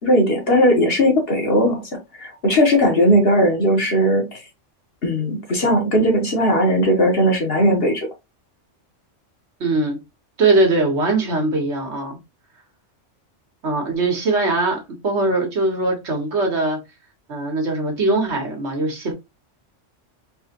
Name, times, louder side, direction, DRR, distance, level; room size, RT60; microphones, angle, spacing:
voice 1, 0.0-4.4 5.0-8.1, equal, 55° left, 1.4 m, -18 dB
voice 2, 9.6-10.0 10.4-12.2 13.6-16.8 17.3-19.1, right 2 dB, 65° right, 1.5 m, -21 dB
4.2 x 3.0 x 2.9 m
omnidirectional pair, 1.3 m